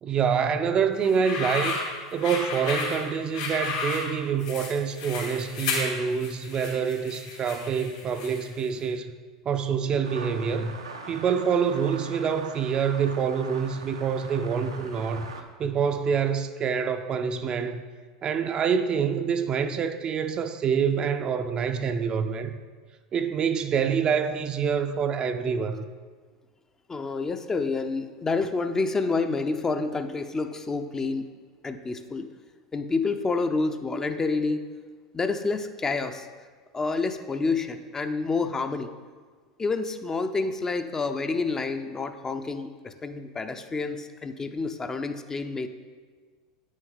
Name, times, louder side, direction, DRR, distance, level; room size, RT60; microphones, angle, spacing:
voice 1, 0.0-1.8 2.1-9.2 9.5-10.8 11.1-15.3 15.6-17.8 18.2-22.6 23.1-25.9, right 6 dB, 35° right, 0.5 m, -26 dB
sound 1, 1.0-8.6, left 4 dB, 70° left, 2.4 m, -33 dB
sound 2, 10.0-15.4, right 4 dB, 90° right, 0.6 m, -42 dB
voice 2, 26.9-31.3 31.6-32.3 32.7-34.6 35.1-36.3 36.7-38.9 39.6-45.7, left 3 dB, 20° left, 0.5 m, -28 dB
8.9 x 6.3 x 3.8 m
hypercardioid pair, 85°, 3 cm